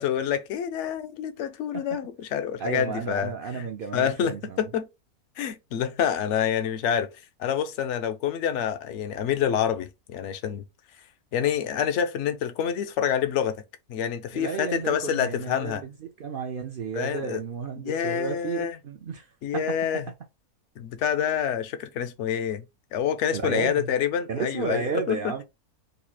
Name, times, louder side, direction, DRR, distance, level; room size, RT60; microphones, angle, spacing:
voice 1, 0.0-3.7 3.9-4.9 5.4-7.1 7.4-10.6 11.3-13.6 13.9-15.8 16.9-17.4 17.8-18.8 19.4-20.1 20.8-22.6 22.9-25.3, left 8 dB, 65° left, 0.8 m, -27 dB
voice 2, 2.6-4.7 14.3-19.2 23.3-23.9 24.3-25.4, right 5 dB, 65° right, 0.5 m, -32 dB
3.9 x 2.4 x 2.8 m
omnidirectional pair, 1.5 m